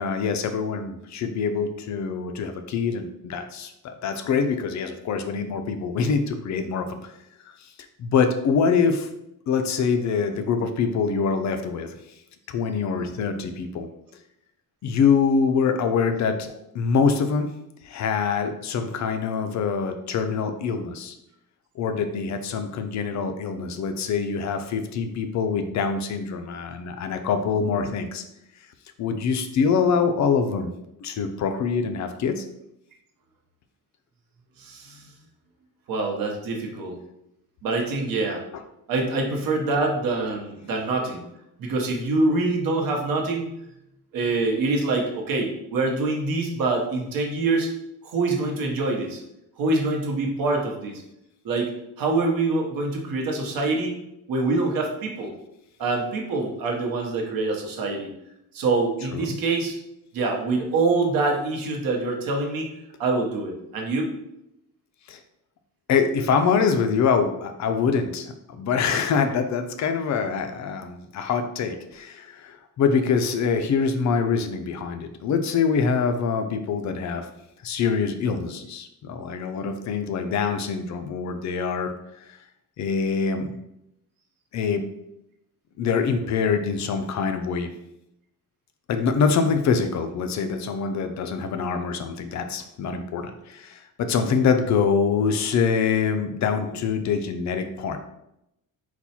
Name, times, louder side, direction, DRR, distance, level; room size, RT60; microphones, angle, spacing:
voice 1, 0.0-7.1 7.6-7.7 8.0-9.1 9.5-11.9 12.5-13.9 14.8-16.5 16.7-17.5 17.8-21.1 21.8-28.2 29.0-30.7 31.0-32.5 59.1-59.4 65.1-65.2 65.9-77.3 77.6-81.9 82.2-82.3 82.8-83.6 84.5-84.9 85.8-87.7 88.9-98.0, left 5 dB, 50° left, 7 dB, 0.4 m, -24 dB
voice 2, 34.6-35.1 35.9-37.0 37.6-38.4 38.9-41.2 41.6-43.5 44.1-47.7 48.0-49.2 49.6-51.0 51.4-51.7 52.0-53.9 54.3-55.3 55.8-58.1 58.5-59.8 60.1-62.7 63.0-64.1, right 3 dB, 70° right, 1 dB, 0.9 m, -25 dB
4.2 x 2.3 x 4.2 m, 0.83 s
cardioid pair, 155°, 36 cm